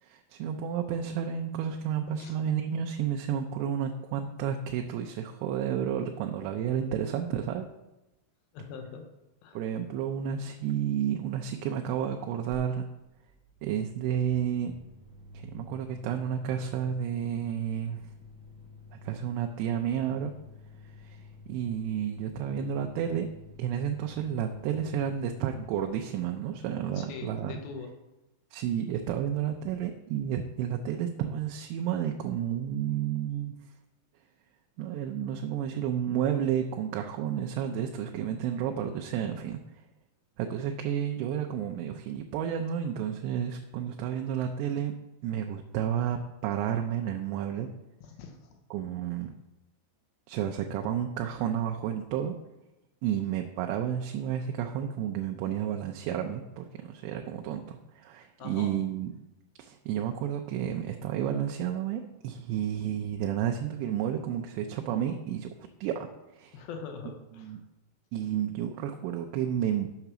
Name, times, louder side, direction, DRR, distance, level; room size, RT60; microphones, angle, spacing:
voice 1, 0.0-7.7 9.5-12.9 13.6-14.7 15.3-18.0 18.9-20.3 21.0-23.3 23.6-27.6 28.5-33.5 34.8-39.6 40.4-44.9 45.2-47.7 48.7-49.3 50.3-52.4 53.0-59.1 59.6-65.5 65.8-66.1 66.3-66.6 67.4-67.6 68.1-69.9, right 9 dB, 85° right, 4 dB, 2.7 m, -31 dB
voice 2, 8.5-9.0 9.4-9.6 27.0-27.9 48.0-48.6 58.4-58.7 66.5-67.5, left 5 dB, 75° left, 4 dB, 2.3 m, -42 dB
sound 1, 12.5-12.6 12.9-25.9, left 4 dB, 25° left, 0.7 m, -51 dB
6.9 x 6.5 x 6.0 m, 0.99 s
omnidirectional pair, 5.1 m